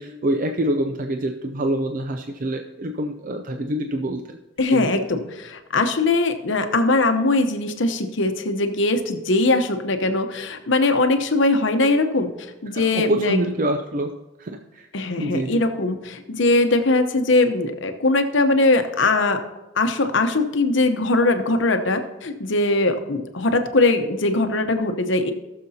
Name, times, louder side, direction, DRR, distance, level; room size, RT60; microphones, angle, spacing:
voice 1, 0.0-4.4 4.7-5.1 12.7-14.1 14.4-14.9 15.2-15.6, right 1 dB, 40° right, 5 dB, 0.5 m, -26 dB
voice 2, 4.6-13.4 14.9-19.4 19.8-25.3, left 2 dB, 65° left, 7 dB, 0.9 m, -21 dB
18.5 x 6.7 x 2.8 m, 1.0 s
head